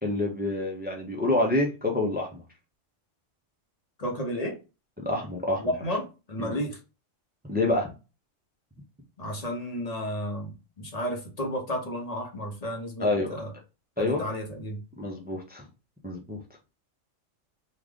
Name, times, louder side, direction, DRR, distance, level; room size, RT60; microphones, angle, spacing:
voice 1, 0.0-2.4 5.0-5.6 6.4-6.6 7.5-7.9 13.0-13.4 14.0-14.2 15.0-15.6 16.0-16.4, left 2 dB, 15° right, 0 dB, 0.3 m, -27 dB
voice 2, 4.0-4.5 5.6-6.8 9.2-13.5 14.0-14.8, equal, 35° left, 1 dB, 0.8 m, -32 dB
3.1 x 2.4 x 3.6 m, 0.30 s
omnidirectional pair, 1.3 m